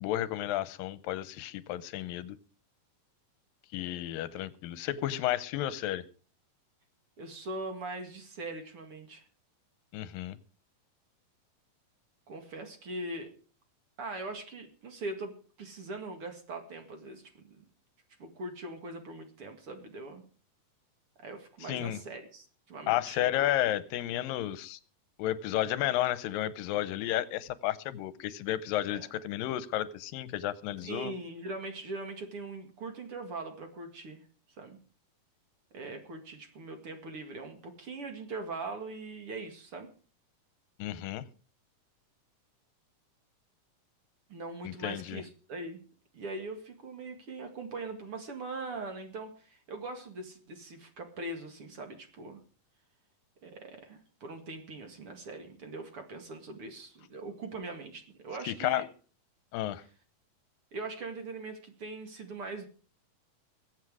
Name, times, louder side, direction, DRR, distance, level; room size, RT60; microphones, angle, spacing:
voice 1, 0.0-2.4 3.7-6.0 9.9-10.4 21.6-22.0 22.9-24.8 25.2-31.1 40.8-41.3 44.6-45.2 58.4-58.9 59.5-59.8, left 13 dB, 85° left, 17 dB, 2.5 m, -32 dB
voice 2, 7.2-9.2 12.3-13.3 14.0-17.6 18.2-20.2 21.2-23.2 28.9-29.1 30.8-34.2 34.6-34.8 35.7-39.9 44.3-45.8 46.1-52.4 53.4-58.9 60.7-62.7, right 2 dB, 45° right, 5 dB, 2.5 m, -41 dB
22.0 x 8.1 x 4.8 m, 0.39 s
omnidirectional pair, 3.9 m